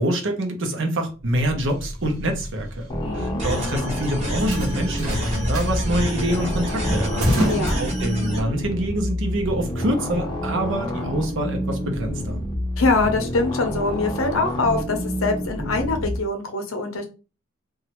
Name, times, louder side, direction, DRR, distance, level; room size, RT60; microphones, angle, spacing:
voice 1, 0.0-2.9 3.1-7.5 7.8-12.4, right 1 dB, 60° right, 0.7 m, -26 dB
sound 1, 1.2-8.5, equal, 75° right, 1.0 m, -29 dB
sound 2, 2.9-16.2, equal, 20° left, 0.6 m, -28 dB
voice 2, 3.0-3.4 7.5-7.8 12.8-17.0, left 3 dB, 70° left, 0.7 m, -24 dB
sound 3, 3.4-8.4, equal, 30° right, 0.8 m, -30 dB
3.0 x 2.3 x 2.9 m
head